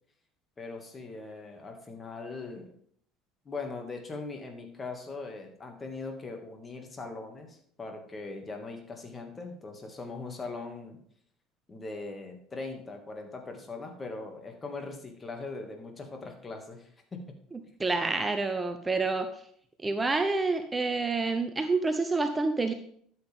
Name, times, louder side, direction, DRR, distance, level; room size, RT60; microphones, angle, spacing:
voice 1, 0.6-2.7 3.5-11.0 11.7-17.3, left 3 dB, 25° left, 4 dB, 2.3 m, -40 dB
voice 2, 17.5-19.4 19.8-22.7, right 3 dB, 20° right, 8 dB, 0.8 m, -28 dB
12.5 x 7.9 x 3.7 m, 0.63 s
figure-of-eight pair, 65°, 0 cm